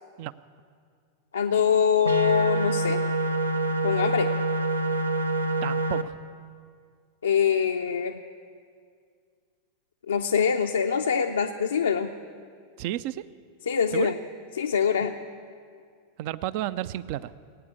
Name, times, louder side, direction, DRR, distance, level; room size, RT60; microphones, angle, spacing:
voice 1, 1.3-3.1 3.8-4.3 7.2-8.2 10.1-12.1 13.7-14.2 14.5-15.1, left 7 dB, 70° left, 4 dB, 0.5 m, -24 dB
sound 1, 2.0-6.0, right 2 dB, 80° right, 0.7 m, -26 dB
voice 2, 5.6-6.2 12.8-13.2 13.9-14.1 16.2-17.3, right 13 dB, 45° right, 17 dB, 0.4 m, -31 dB
17.0 x 9.0 x 8.3 m, 2.2 s
figure-of-eight pair, 90°, 0 cm